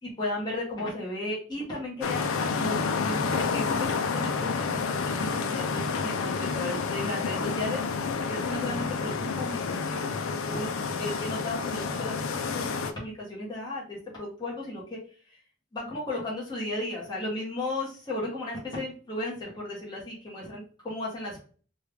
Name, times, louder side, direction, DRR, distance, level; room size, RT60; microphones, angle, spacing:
voice 1, 0.0-15.4 15.7-21.4, left 1 dB, 20° left, -6 dB, 1.0 m, -35 dB
sound 1, 2.0-12.9, left 5 dB, 70° left, 0.4 m, -29 dB
3.3 x 2.3 x 3.3 m, 0.41 s
head